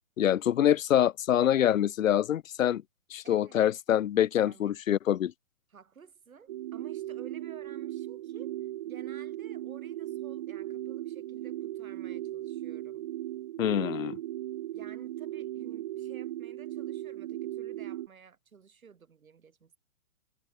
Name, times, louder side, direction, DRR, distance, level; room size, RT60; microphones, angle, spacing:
voice 1, 0.2-2.8 3.1-5.3 13.6-14.2, left 11 dB, 70° left, 0.7 m, -25 dB
voice 2, 3.2-3.7 4.4-4.7 5.7-13.1 14.7-19.8, right 6 dB, 80° right, 7.8 m, -54 dB
sound 1, 6.5-18.1, right 14 dB, 30° right, 1.5 m, -37 dB
hypercardioid pair, 160°, 41 cm